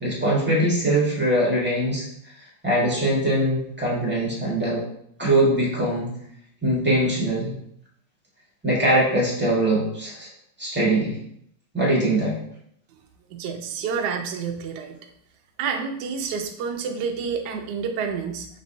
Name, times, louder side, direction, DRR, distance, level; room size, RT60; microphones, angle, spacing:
voice 1, 0.0-2.0 2.6-4.8 5.2-6.1 6.6-7.5 8.6-10.3 10.6-11.2 11.7-12.4, right 1 dB, 5° right, -6 dB, 0.9 m, -22 dB
voice 2, 13.3-15.0 15.6-18.5, right 6 dB, 80° right, 4 dB, 0.9 m, -29 dB
5.3 x 3.1 x 2.6 m, 0.71 s
omnidirectional pair, 2.4 m